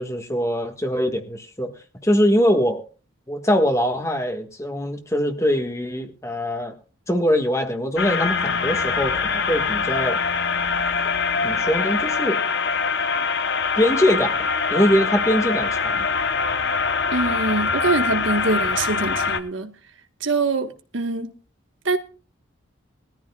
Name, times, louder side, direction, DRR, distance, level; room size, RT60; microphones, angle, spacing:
voice 1, 0.0-2.8 3.3-6.7 7.1-10.2 11.4-12.4 13.8-16.1, equal, 15° left, 1.6 m, -22 dB
sound 1, 8.0-19.4, left 5 dB, 60° left, 1.0 m, -23 dB
voice 2, 17.1-19.7 20.2-21.3 21.8-22.0, right 3 dB, 80° right, 1.4 m, -24 dB
20.5 x 13.5 x 2.4 m
head